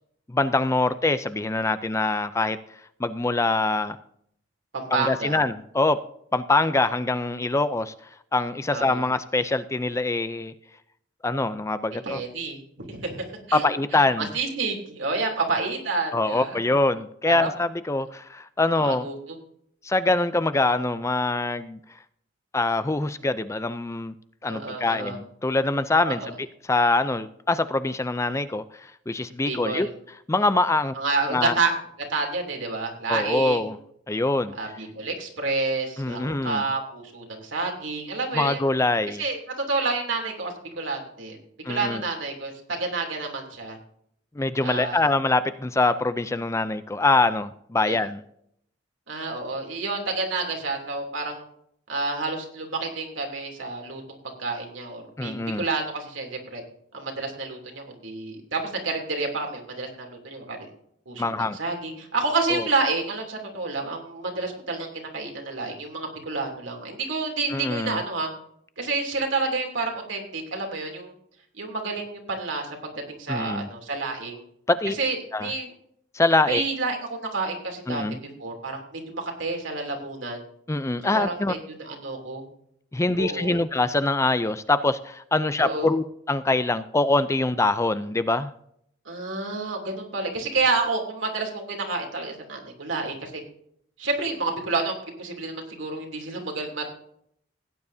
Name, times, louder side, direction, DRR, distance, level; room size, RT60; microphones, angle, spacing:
voice 1, 0.3-2.6 3.0-4.0 4.9-6.0 6.3-7.9 8.3-10.5 11.2-12.2 13.5-14.3 16.1-19.1 19.8-21.8 22.5-24.1 24.4-29.9 30.3-30.9 31.3-31.5 33.1-33.8 34.1-34.6 36.0-36.7 38.3-39.2 41.6-42.0 44.4-48.2 55.2-55.7 61.2-61.6 62.5-62.6 67.5-68.0 73.3-73.7 74.7-74.9 75.3-75.5 76.1-76.6 77.9-78.2 80.7-81.5 82.9-88.5, left 2 dB, 15° left, 13 dB, 0.4 m, -24 dB
voice 2, 4.7-5.4 8.7-9.0 12.0-12.6 12.9-13.6 13.9-16.6 17.3-17.5 18.8-19.1 24.5-25.2 26.0-26.3 29.4-29.9 30.9-31.7 32.1-33.8 34.5-38.6 39.1-41.4 41.7-43.8 44.6-45.0 47.8-48.0 49.1-51.4 51.9-56.6 56.9-60.6 61.1-68.3 68.8-71.1 71.5-74.4 75.0-75.7 76.5-78.0 78.4-80.4 81.1-82.4 83.2-83.6 85.6-85.9 89.0-93.4 94.0-96.9, right 3 dB, 80° right, 1 dB, 3.0 m, -29 dB
17.0 x 9.5 x 2.7 m, 0.69 s
head